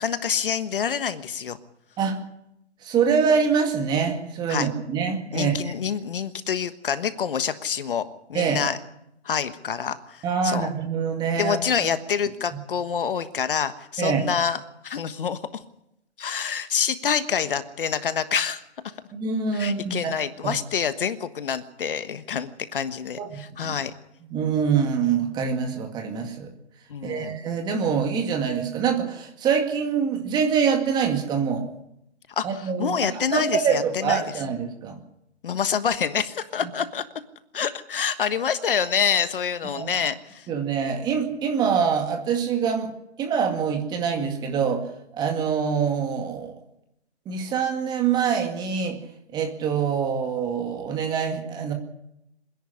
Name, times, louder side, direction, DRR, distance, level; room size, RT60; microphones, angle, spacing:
voice 1, 0.0-1.6 4.5-4.7 5.3-8.8 9.2-10.7 11.3-15.6 16.2-18.6 19.5-23.9 26.9-27.4 32.4-34.2 35.4-37.0 37.5-40.5, left 7 dB, 50° left, 11 dB, 1.4 m, -27 dB
voice 2, 2.8-5.6 8.3-8.6 10.2-11.6 14.0-14.2 19.1-20.1 20.4-20.6 23.2-23.7 24.3-26.5 27.0-31.7 32.4-35.0 39.7-39.9 40.5-42.9 43.2-44.8 45.1-46.5 47.3-49.0 49.3-51.7, right 6 dB, 10° right, 4 dB, 2.1 m, -25 dB
26.5 x 10.5 x 9.9 m, 0.83 s
hypercardioid pair, 150°, 34 cm